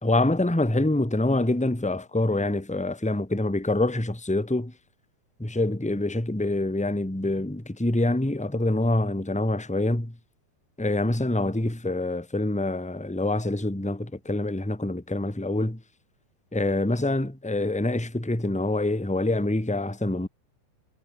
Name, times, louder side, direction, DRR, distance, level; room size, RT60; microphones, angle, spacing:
voice 1, 0.0-4.7 5.4-10.1 10.8-15.8 16.5-20.3, left 2 dB, ahead, 2.6 m, -26 dB
omnidirectional pair, 4.4 m